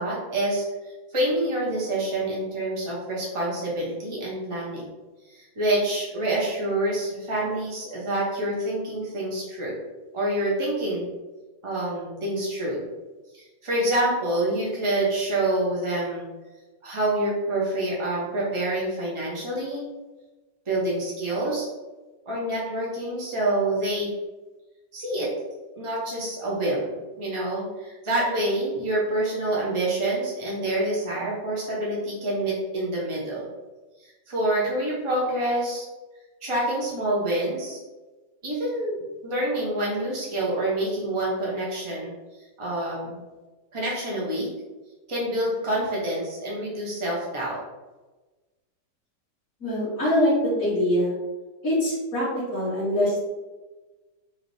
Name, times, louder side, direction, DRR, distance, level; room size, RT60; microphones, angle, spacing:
voice 1, 0.0-4.8 5.3-9.8 10.1-11.1 11.6-12.8 13.3-16.3 16.8-19.8 20.7-21.7 22.3-24.1 24.9-25.3 25.8-26.9 27.2-33.5 34.0-35.8 36.4-37.8 38.4-39.0 39.2-42.1 42.6-43.3 43.7-44.5 45.1-47.6, right 1 dB, 45° right, -5 dB, 0.4 m, -27 dB
voice 2, 49.6-51.1 51.6-53.2, left 1 dB, 55° left, -11 dB, 1.9 m, -23 dB
4.8 x 2.6 x 3.2 m, 1.2 s
omnidirectional pair, 1.9 m